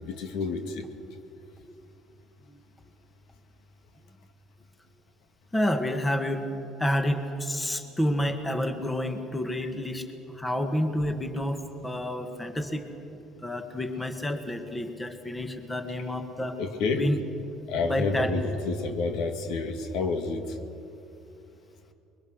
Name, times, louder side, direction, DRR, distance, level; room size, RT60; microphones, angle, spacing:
voice 1, 0.0-0.8 16.6-17.0 17.7-20.4, left 4 dB, 75° left, 6 dB, 2.1 m, -29 dB
voice 2, 5.5-10.0 10.3-12.9 13.4-16.6 16.9-17.2 17.8-18.3, left 1 dB, 10° left, 6 dB, 1.5 m, -29 dB
28.5 x 22.5 x 6.4 m, 2.8 s
cardioid pair, 150°, 0 cm